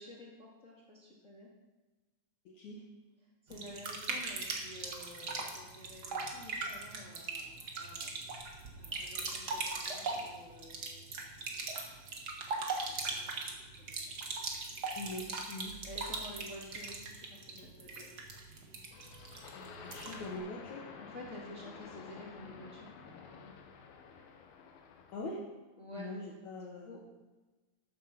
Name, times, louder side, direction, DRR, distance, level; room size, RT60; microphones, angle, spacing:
voice 1, 0.0-1.5 3.4-8.4 8.8-11.2 11.8-12.3 12.8-13.4 13.8-14.2 15.8-18.2 21.0-23.5 25.8-26.1 26.8-27.0, left 1 dB, 30° left, -5 dB, 1.6 m, -51 dB
voice 2, 2.5-2.9 15.0-15.8 19.5-20.9 25.1-25.5 25.9-27.0, left 2 dB, 65° left, -1 dB, 2.2 m, -43 dB
sound 1, 3.5-20.3, right 3 dB, 85° right, 0.9 m, -40 dB
sound 2, 18.9-25.2, left 6 dB, 80° left, 3.0 m, -51 dB
13.5 x 7.5 x 5.9 m, 1.2 s
omnidirectional pair, 4.2 m